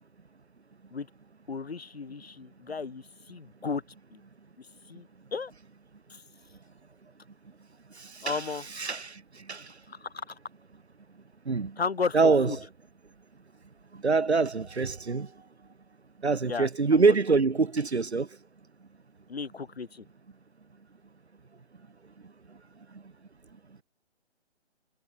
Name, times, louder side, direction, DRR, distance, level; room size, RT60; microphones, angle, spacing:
voice 1, 1.5-3.8 4.1-4.2 4.6-5.1 5.3-5.5 6.1-6.2 8.2-8.7 9.9-10.4 11.8-12.6 16.5-17.1 19.3-20.0, left 5 dB, 65° left, 3.4 m, -34 dB
voice 2, 8.0-8.4 8.7-9.7 11.4-11.8 12.1-12.6 13.9-15.3 16.2-18.3, right 4 dB, 75° right, 1.7 m, -25 dB
figure-of-eight pair, 140°, 33 cm